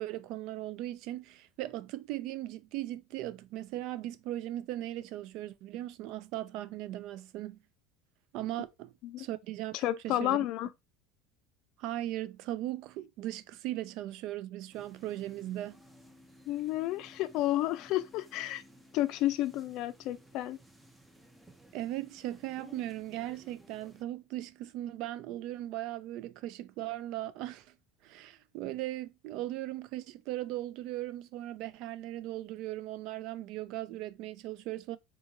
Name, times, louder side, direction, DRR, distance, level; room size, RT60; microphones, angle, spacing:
voice 1, 0.0-7.6 8.3-8.9 9.2-9.8 10.0-10.4 11.8-15.8 21.7-27.7 28.0-35.0, right 14 dB, 60° right, 0.4 m, -38 dB
voice 2, 9.7-10.7 16.5-18.6 18.9-20.6, left 14 dB, 60° left, 0.4 m, -31 dB
sound 1, 14.7-24.0, equal, 10° right, 0.6 m, -57 dB
3.7 x 2.6 x 2.8 m
supercardioid pair, 120°, 0 cm